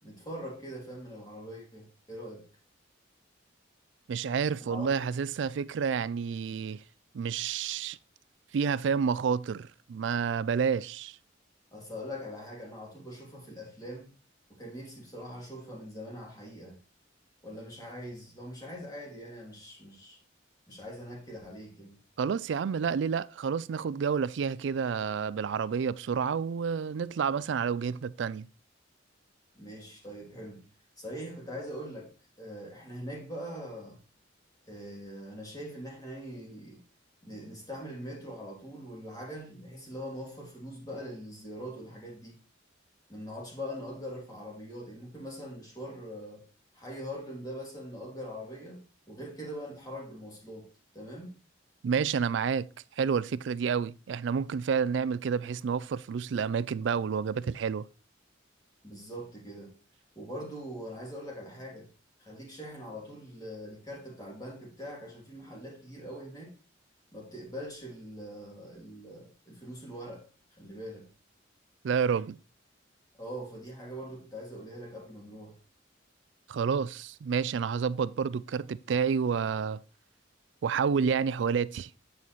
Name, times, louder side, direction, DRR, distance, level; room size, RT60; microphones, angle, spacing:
voice 1, 0.0-2.5 4.6-4.9 11.7-14.1 14.5-16.8 17.4-20.2 20.7-22.0 29.5-30.7 31.0-32.1 32.4-34.0 34.7-36.8 37.2-42.4 43.1-46.4 46.7-50.7 50.9-51.3 58.8-59.8 60.1-61.9 62.2-66.5 67.1-70.3 70.6-71.1 73.1-75.6, equal, 20° left, 2.8 m, -42 dB
voice 2, 4.1-6.8 7.1-8.0 8.5-11.2 22.2-28.5 51.8-52.7 53.0-57.9 71.8-72.4 76.5-79.8 80.6-81.9, right 6 dB, 65° right, 0.3 m, -29 dB
8.6 x 5.5 x 3.1 m
head